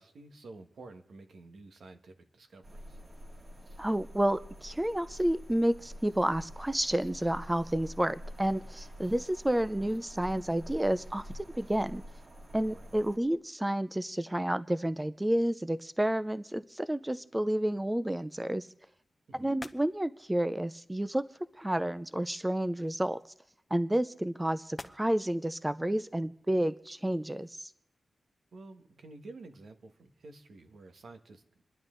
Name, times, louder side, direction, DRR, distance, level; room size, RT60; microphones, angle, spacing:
voice 1, 0.0-3.0 12.7-12.9 19.3-19.5 28.5-31.4, right 3 dB, 80° right, 6 dB, 1.6 m, -50 dB
sound 1, 2.6-13.2, equal, 45° right, 2.5 m, -47 dB
voice 2, 3.8-12.0 12.5-18.7 19.4-21.3 21.6-23.2 23.7-27.7, right 1 dB, 10° right, 14 dB, 0.5 m, -30 dB
sound 2, 18.1-27.5, left 2 dB, 30° left, 0.9 m, -55 dB
28.0 x 10.5 x 3.9 m, 0.76 s
wide cardioid pair, 95°, 0 cm